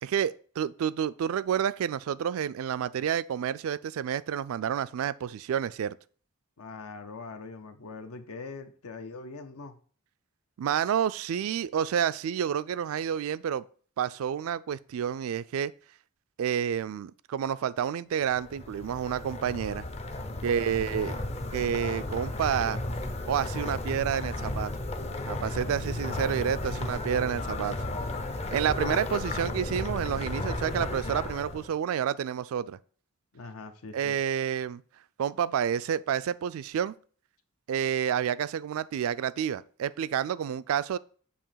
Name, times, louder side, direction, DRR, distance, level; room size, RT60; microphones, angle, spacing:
voice 1, 0.0-6.0 10.6-13.6 14.0-15.7 16.4-19.9 20.4-21.2 21.5-22.8 23.3-24.7 25.3-27.8 28.5-32.8 33.9-34.8 35.2-36.9 37.7-41.0, right 8 dB, 65° right, 0.3 m, -29 dB
voice 2, 6.6-9.8 20.3-20.8 25.5-26.9 33.3-34.2, left 3 dB, 75° left, 0.7 m, -43 dB
sound 1, 18.3-31.7, left 2 dB, 30° left, 0.5 m, -34 dB
6.9 x 2.9 x 5.6 m
head